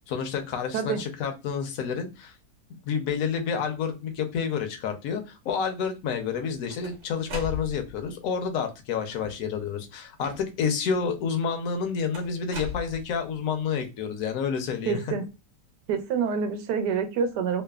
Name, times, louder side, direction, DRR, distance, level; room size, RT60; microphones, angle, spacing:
voice 1, 0.1-2.3 2.9-15.0, left 6 dB, 65° left, 6 dB, 0.9 m, -29 dB
sound 1, 6.3-8.1 9.0-9.5 10.2-10.8 12.1-13.4, left 3 dB, 50° right, 1.1 m, -39 dB
voice 2, 14.9-15.2 15.9-17.6, right 6 dB, 80° right, 8 dB, 1.1 m, -27 dB
3.2 x 2.0 x 2.2 m, 0.27 s
omnidirectional pair, 1.8 m